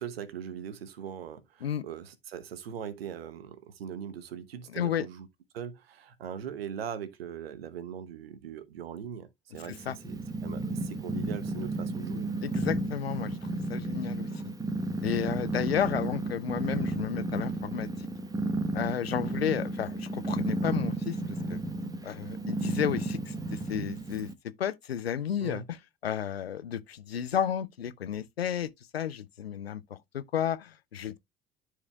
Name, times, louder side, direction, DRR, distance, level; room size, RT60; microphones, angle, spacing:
voice 1, 0.0-5.3 5.5-12.3 25.4-25.7, right 8 dB, 75° right, 1.0 m, -40 dB
voice 2, 4.7-5.1 9.9-10.0 12.4-14.4 15.0-18.1 18.7-21.2 21.5-21.6 22.0-24.3 24.6-25.6 26.0-31.2, left 9 dB, 85° left, 0.5 m, -32 dB
Purr, 9.6-24.3, right 2 dB, 10° right, 1.0 m, -33 dB
12.5 x 4.8 x 2.3 m
figure-of-eight pair, 65°, 30 cm